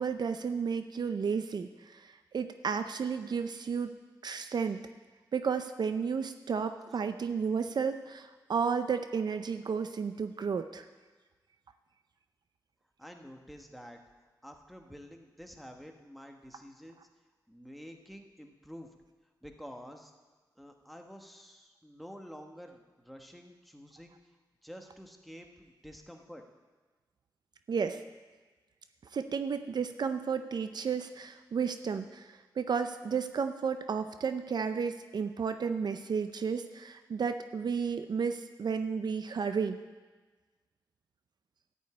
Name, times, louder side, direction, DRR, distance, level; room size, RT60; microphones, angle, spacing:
voice 1, 0.0-3.9 4.2-4.8 5.3-10.9 27.7-28.0 29.1-39.8, right 6 dB, 60° right, 9 dB, 0.5 m, -32 dB
voice 2, 13.0-14.0 14.4-17.1 17.5-18.9 19.4-20.1 20.6-26.4, equal, ahead, 3 dB, 1.2 m, -49 dB
13.5 x 5.4 x 8.6 m, 1.3 s
wide cardioid pair, 90°, 8 cm